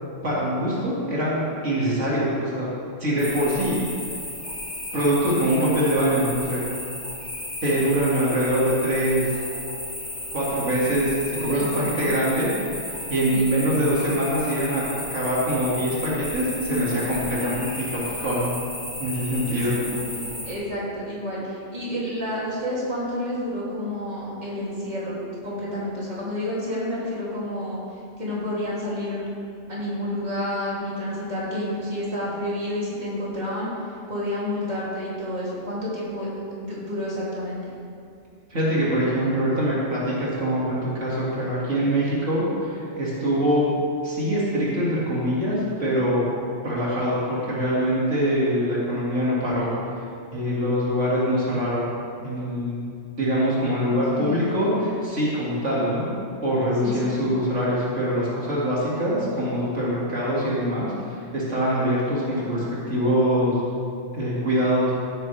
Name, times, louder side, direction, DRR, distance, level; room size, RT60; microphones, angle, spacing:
voice 1, 0.2-2.7 3.0-3.8 4.9-6.6 7.6-9.3 10.3-12.5 12.8-18.5 19.0-19.8 38.5-43.7 44.0-46.3 46.6-49.7 50.3-51.9 52.2-52.8 53.2-56.0 56.4-63.6 64.1-64.9, equal, 75° right, -7 dB, 2.6 m, -24 dB
sound 1, 3.2-20.5, left 1 dB, 60° left, 3.2 m, -34 dB
voice 2, 11.5-11.9 13.3-13.5 19.4-27.8 28.2-29.2 29.7-33.7 34.1-36.3 36.6-37.7 53.8-54.5 56.8-57.2, left 1 dB, 35° right, -8 dB, 3.0 m, -30 dB
16.0 x 9.0 x 3.4 m, 2.4 s
omnidirectional pair, 1.3 m